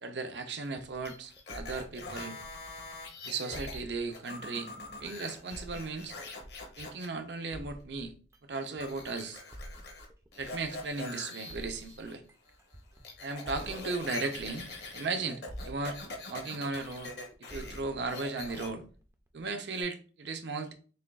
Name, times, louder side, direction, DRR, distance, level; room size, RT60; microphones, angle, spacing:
voice 1, 0.0-2.4 3.2-4.7 5.0-6.1 6.8-8.1 8.5-9.4 10.4-12.2 13.2-14.7 14.9-16.0 16.3-17.1 17.4-18.8 19.3-20.7, right 3 dB, 75° right, 0.6 m, -36 dB
sound 1, 0.6-3.1 3.5-7.0 7.5-11.1 11.5-15.2 15.5-19.6, equal, 15° right, 0.4 m, -49 dB
sound 2, 1.0-3.8 4.1-7.1 8.8-10.1 10.3-12.1 12.5-17.8 18.1-18.7 19.7-19.8, left 3 dB, 70° left, 1.0 m, -44 dB
6.5 x 2.3 x 2.3 m
head